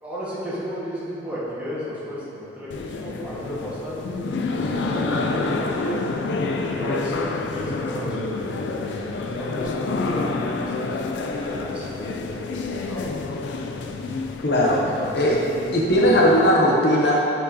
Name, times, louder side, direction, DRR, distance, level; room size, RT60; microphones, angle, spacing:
voice 1, 0.0-6.1 6.6-11.0 11.3-12.6 12.8-13.1, equal, 10° right, -10 dB, 1.5 m, -34 dB
sound 1, 2.7-16.6, left 3 dB, 90° left, 0.4 m, -28 dB
voice 2, 14.4-14.8 15.1-15.4 15.7-17.2, equal, 65° left, -3 dB, 0.7 m, -18 dB
8.2 x 4.4 x 2.8 m, 2.9 s
head